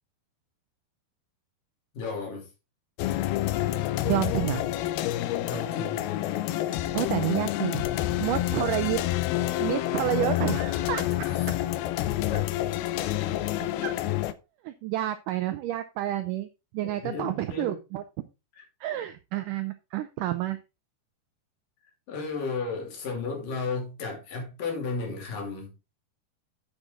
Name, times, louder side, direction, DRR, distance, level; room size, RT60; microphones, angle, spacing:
voice 1, 1.9-2.5 5.4-6.0 11.2-11.5 12.3-12.4 13.6-13.8 17.0-17.8 18.6-18.7 22.1-25.7, left 4 dB, 60° left, 4.1 m, -34 dB
sound 1, 3.0-14.3, left 14 dB, 85° left, 2.5 m, -28 dB
voice 2, 3.5-4.6 6.6-7.8 8.2-9.0 9.6-11.3 13.8-13.9 14.6-16.5 16.7-18.0 18.8-20.6, right 13 dB, 85° right, 1.9 m, -29 dB
9.0 x 7.6 x 3.7 m
omnidirectional pair, 4.4 m